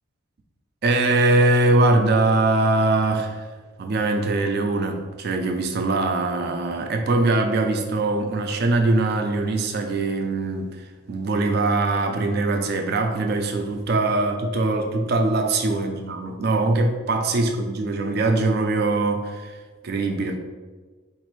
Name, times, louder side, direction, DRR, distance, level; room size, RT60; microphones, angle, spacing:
voice 1, 0.8-3.5 3.8-10.8 11.1-19.5 19.8-20.4, right 2 dB, 45° right, 4 dB, 0.3 m, -22 dB
4.0 x 2.6 x 3.0 m, 1.4 s
head